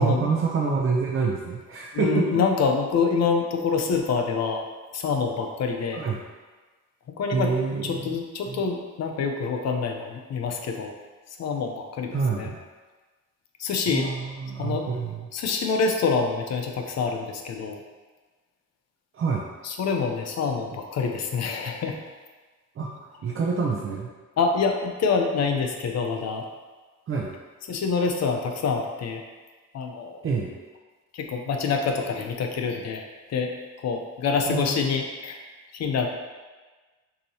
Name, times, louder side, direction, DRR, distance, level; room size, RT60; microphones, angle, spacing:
voice 1, 0.0-2.4 5.9-6.2 7.3-8.2 8.5-8.6 12.1-12.6 13.9-15.3 19.1-19.4 22.8-22.9 23.2-24.1 27.1-27.3 30.2-30.5 34.5-34.8, right 5 dB, 45° right, -2 dB, 0.6 m, -27 dB
voice 2, 1.9-4.6 4.9-6.0 7.2-7.5 7.8-10.9 11.4-12.5 13.6-14.1 14.6-14.9 15.3-17.8 19.6-22.0 24.4-26.4 27.7-29.2 29.7-30.2 31.1-33.0 33.3-33.5 33.8-35.4 35.7-36.1, left 5 dB, 60° left, 3 dB, 0.7 m, -26 dB
6.7 x 2.9 x 2.8 m, 1.3 s
cardioid pair, 90°, 30 cm